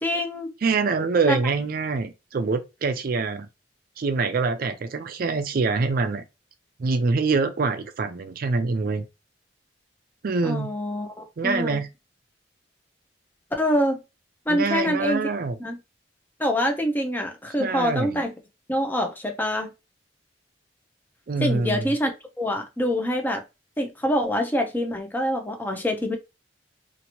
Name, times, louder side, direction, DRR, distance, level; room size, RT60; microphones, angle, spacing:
voice 1, 0.0-0.5 1.3-1.4 10.4-11.8 13.6-14.0 14.5-15.3 15.6-15.8 16.4-18.3 18.7-19.7 21.4-22.1 22.4-23.4 23.8-26.2, equal, 10° left, 0.6 m, -25 dB
voice 2, 0.6-3.5 4.0-6.2 6.8-9.1 10.2-10.7 11.4-11.9 14.5-15.6 17.6-18.2 21.3-21.9, right 4 dB, 50° right, 0.4 m, -25 dB
2.8 x 2.5 x 2.8 m
head